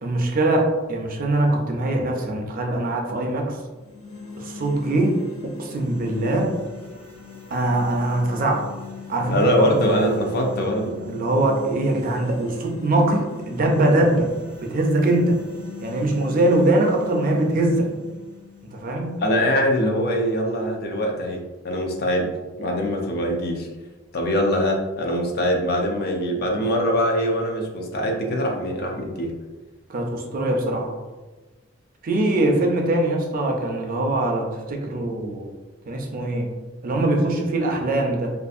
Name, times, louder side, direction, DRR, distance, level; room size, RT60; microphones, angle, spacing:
voice 1, 0.0-3.6 4.4-6.5 7.5-8.6 9.1-10.0 11.0-14.3 14.6-15.4 15.8-17.9 18.7-19.2 29.9-30.9 32.0-35.5 35.9-36.5 36.8-38.3, right 1 dB, 45° right, 2 dB, 0.4 m, -22 dB
sound 1, 3.7-19.7, left 6 dB, 85° left, 0.7 m, -40 dB
voice 2, 9.3-10.9 19.2-22.3 22.6-23.7 24.1-29.3, equal, 50° left, 1 dB, 0.5 m, -23 dB
2.6 x 2.4 x 2.4 m, 1.2 s
head